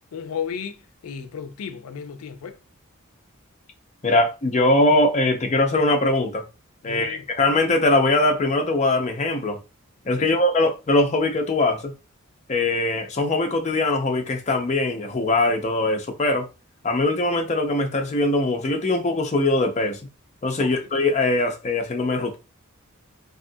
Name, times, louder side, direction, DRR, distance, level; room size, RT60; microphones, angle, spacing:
voice 1, 0.1-2.6 6.8-7.3 10.2-10.4 20.6-20.9, left 7 dB, 90° left, 0.4 m, -34 dB
voice 2, 4.0-6.4 6.8-9.6 10.1-11.9 12.5-16.5 16.8-20.0 20.4-22.4, left 2 dB, 30° left, 0.5 m, -21 dB
2.7 x 2.4 x 2.6 m
head